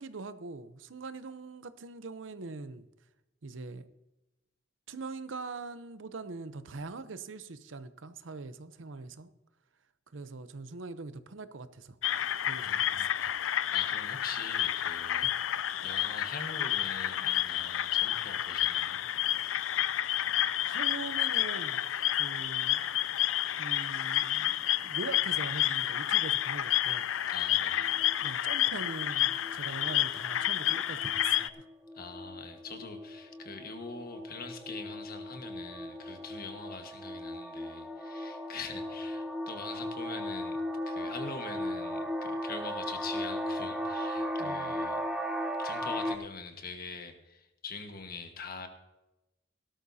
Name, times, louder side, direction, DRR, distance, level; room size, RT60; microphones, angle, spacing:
voice 1, 0.0-2.9 3.4-3.9 4.9-9.3 10.1-12.0 12.4-13.1 15.2-15.3 19.6-19.7 20.6-21.9 22.1-22.9 23.6-27.1 28.2-31.6 44.4-44.7, right 3 dB, 75° right, 0.7 m, -42 dB
sound 1, 12.0-31.5, left 12 dB, 90° left, 0.4 m, -30 dB
voice 2, 12.5-13.3 13.7-15.3 15.8-19.0 27.3-28.0 31.9-40.6 40.9-45.0 45.6-48.7, left 4 dB, 50° left, 1.5 m, -43 dB
sound 2, 27.8-28.3 28.8-29.0 29.3-29.6 29.9-46.2, equal, 5° right, 0.9 m, -37 dB
17.5 x 12.5 x 2.8 m
head